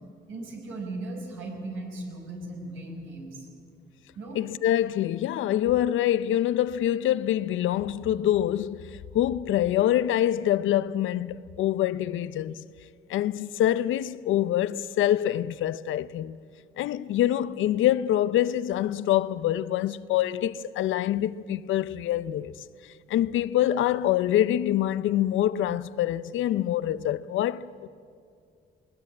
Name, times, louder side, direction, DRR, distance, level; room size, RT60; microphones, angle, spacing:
voice 1, 0.3-3.5 4.2-4.4, right 2 dB, 90° right, 5.4 m, -37 dB
voice 2, 4.3-12.6 13.1-16.4 16.8-22.6 23.1-27.9, left 12 dB, 80° left, 0.7 m, -25 dB
20.5 x 19.5 x 8.7 m
cardioid pair, 90°, 20 cm